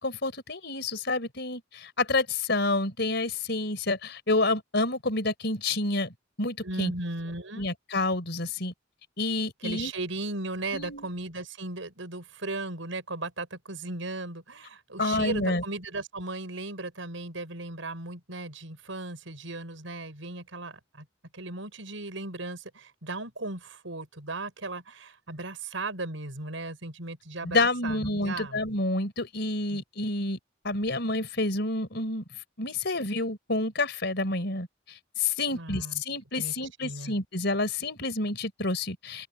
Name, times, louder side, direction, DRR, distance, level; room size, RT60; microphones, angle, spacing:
voice 1, 0.0-6.9 7.6-8.7 9.2-9.9 10.7-11.1 15.0-15.6 27.4-30.4 30.6-32.2 32.6-39.3, left 2 dB, 60° left, 4.9 m, -29 dB
voice 2, 6.6-7.7 9.6-21.0 21.3-28.6 29.7-29.8 35.5-36.0 36.4-36.5 36.8-37.2, right 2 dB, 85° right, 6.0 m, -36 dB
open air
head